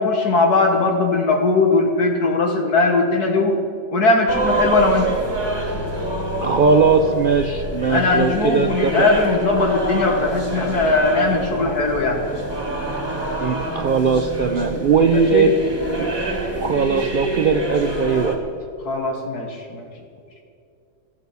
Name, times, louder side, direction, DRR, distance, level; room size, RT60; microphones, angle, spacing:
voice 1, 0.0-3.6 3.9-5.1 7.9-12.2 15.3-15.5 18.8-19.9, left 3 dB, 65° left, 2 dB, 1.9 m, -19 dB
sound 1, 4.3-18.4, right 1 dB, 15° right, 1.9 m, -27 dB
voice 2, 6.4-9.1 13.4-15.5 16.0-16.1 16.5-18.4, right 5 dB, 70° right, 6 dB, 0.4 m, -19 dB
14.0 x 12.5 x 7.0 m, 2.5 s
omnidirectional pair, 1.8 m